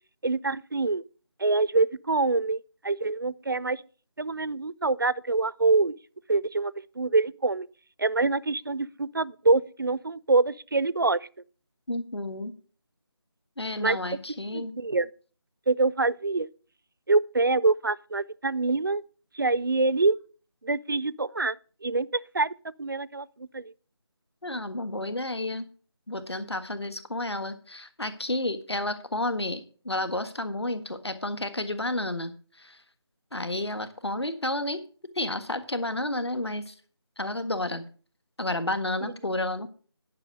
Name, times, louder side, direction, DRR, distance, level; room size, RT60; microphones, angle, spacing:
voice 1, 0.2-1.0 1.4-3.8 4.2-5.9 6.3-7.7 8.0-11.3 13.8-14.0 14.5-15.1 15.7-16.5 17.1-19.0 19.3-20.2 20.6-21.6 21.8-23.7 39.0-39.1, right 3 dB, 50° right, 0.4 m, -25 dB
voice 2, 11.9-12.5 13.6-14.7 24.4-25.7 26.1-32.8 33.3-34.8 35.1-36.7 37.2-37.8 38.4-39.7, left 1 dB, 70° left, 1.5 m, -31 dB
10.5 x 5.8 x 6.4 m
figure-of-eight pair, 160°, 14 cm